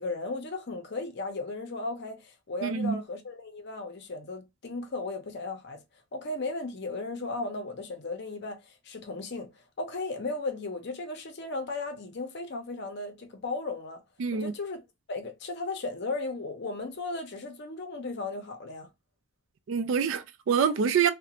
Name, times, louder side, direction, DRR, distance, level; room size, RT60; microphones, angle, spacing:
voice 1, 0.0-5.8 6.1-14.0 14.3-18.9, left 3 dB, 55° left, 0.6 m, -36 dB
voice 2, 2.6-3.0 14.2-14.5 19.7-21.1, right 6 dB, 65° right, 0.3 m, -26 dB
2.4 x 2.1 x 2.8 m
head